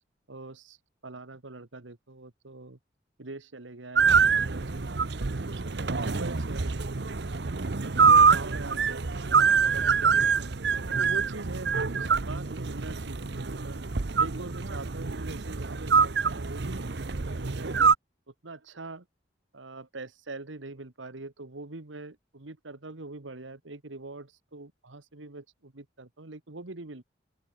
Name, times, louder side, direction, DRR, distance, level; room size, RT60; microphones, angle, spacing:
voice 1, 0.3-0.8 1.0-2.8 3.2-7.0 7.8-9.1 9.6-10.6 11.0-13.8 14.2-16.9 17.3-17.8 18.3-19.1 19.5-27.0, right 2 dB, 85° right, 1.5 m, -43 dB
Soloing escalator, 3.9-17.9, right 5 dB, 60° right, 0.8 m, -25 dB
open air
head